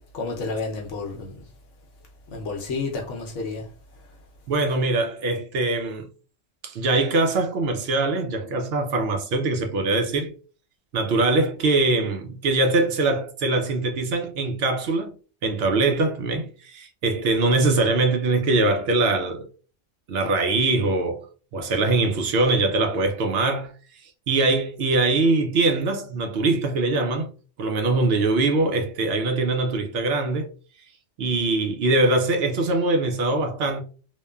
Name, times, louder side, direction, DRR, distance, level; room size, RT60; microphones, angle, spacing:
voice 1, 0.1-1.5 2.3-3.7 4.0-4.2, left 3 dB, 70° left, 0.9 m, -31 dB
voice 2, 4.5-6.1 6.6-10.4 10.9-15.1 15.4-19.5 20.1-23.7 24.3-27.3 27.6-30.5 31.2-33.8, right 2 dB, 60° right, 0.7 m, -22 dB
3.0 x 2.1 x 2.2 m
omnidirectional pair, 1.3 m